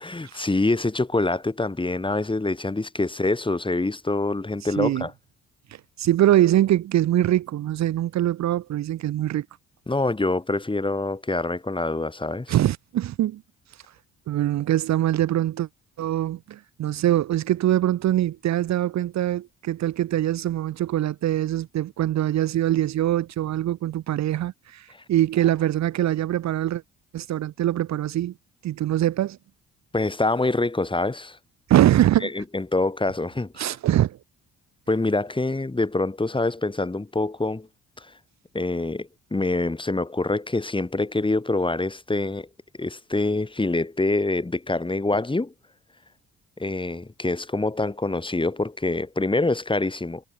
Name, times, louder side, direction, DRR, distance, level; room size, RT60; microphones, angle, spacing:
voice 1, 0.0-5.1 9.9-12.6 24.9-25.0 29.9-31.4 32.2-33.8 34.9-37.7 38.0-38.1 38.5-42.5 42.8-45.5 46.6-50.2, left 2 dB, 15° left, 5.9 m, -25 dB
voice 2, 4.8-5.1 6.0-9.4 12.5-13.4 14.3-15.7 16.0-26.8 27.1-28.3 28.6-29.4 31.7-32.3 33.6-34.2, right 13 dB, 65° right, 0.9 m, -23 dB
cardioid pair, 90°, 30 cm